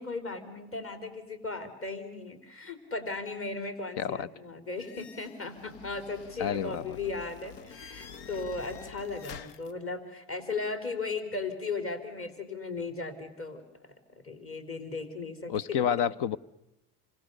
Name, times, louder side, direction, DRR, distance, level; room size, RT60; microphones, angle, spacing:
voice 1, 0.0-15.8, left 3 dB, 25° left, 8 dB, 3.6 m, -37 dB
voice 2, 4.0-4.3 6.4-7.0 15.5-16.4, left 8 dB, 55° left, 21 dB, 1.0 m, -29 dB
sound 1, 4.8-9.7, left 6 dB, 75° left, 1.5 m, -48 dB
28.5 x 25.0 x 6.7 m, 0.90 s
supercardioid pair, 95°, 48 cm